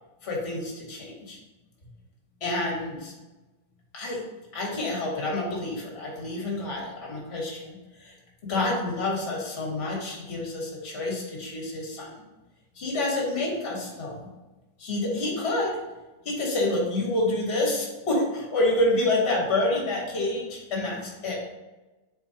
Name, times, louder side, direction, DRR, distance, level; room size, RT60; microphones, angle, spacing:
voice 1, 0.2-1.4 2.4-3.1 3.9-4.2 4.5-8.2 8.4-12.1 12.7-14.3 14.8-15.8 16.2-21.5, left 2 dB, 40° left, -2 dB, 1.6 m, -28 dB
7.8 x 4.5 x 2.9 m, 1.1 s
omnidirectional pair, 1.8 m